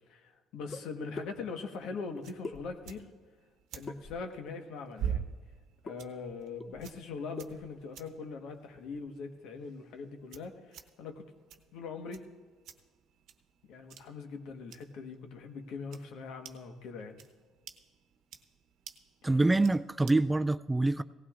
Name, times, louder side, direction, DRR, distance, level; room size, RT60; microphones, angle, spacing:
voice 1, 0.1-3.1 3.7-5.3 5.8-11.3 11.7-12.3 13.7-17.2 19.2-19.4, left 4 dB, 75° left, 1.3 m, -42 dB
sound 1, 0.7-0.8 1.2-1.3 2.4-3.0 3.9-4.4 5.9-6.0 6.3-6.4 6.6-7.0 7.4-7.7, left 3 dB, 30° left, 0.7 m, -43 dB
sound 2, 1.2-20.4, right 8 dB, 70° right, 0.9 m, -47 dB
voice 2, 19.2-21.0, right 2 dB, 10° right, 0.3 m, -26 dB
18.0 x 16.0 x 2.5 m
cardioid pair, 95°, 0 cm